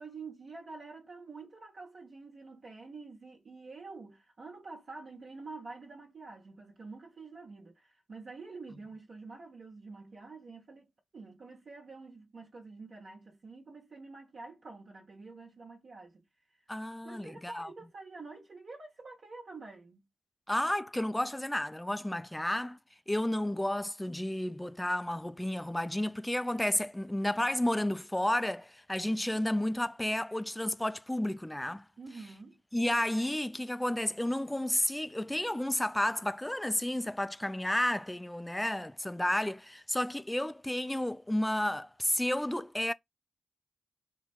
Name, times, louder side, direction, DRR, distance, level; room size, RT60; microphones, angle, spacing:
voice 1, 0.0-16.2 16.5-16.7 17.0-20.1 32.0-32.6, right 3 dB, 55° right, 1.2 m, -48 dB
voice 2, 16.7-17.7 20.5-22.8 23.1-31.8 32.7-42.9, left 1 dB, 10° left, 0.4 m, -31 dB
4.1 x 2.2 x 4.3 m
supercardioid pair, 40°, 0 cm